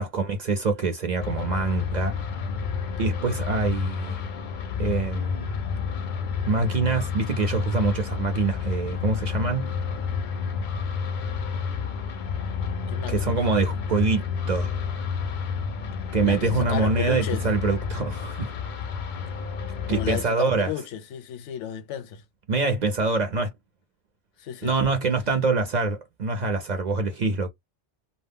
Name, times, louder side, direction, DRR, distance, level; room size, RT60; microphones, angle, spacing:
voice 1, 0.0-2.1 3.0-4.2 4.8-5.5 6.5-9.7 13.1-14.7 16.1-18.5 19.9-20.7 22.5-23.5 24.6-27.5, right 3 dB, 50° right, 0.5 m, -25 dB
sound 1, 1.2-20.2, left 6 dB, 60° left, 0.5 m, -30 dB
voice 2, 12.9-13.4 16.2-17.4 19.9-22.2 24.4-24.7, left 9 dB, 85° left, 0.9 m, -33 dB
2.2 x 2.0 x 3.4 m
omnidirectional pair, 1.2 m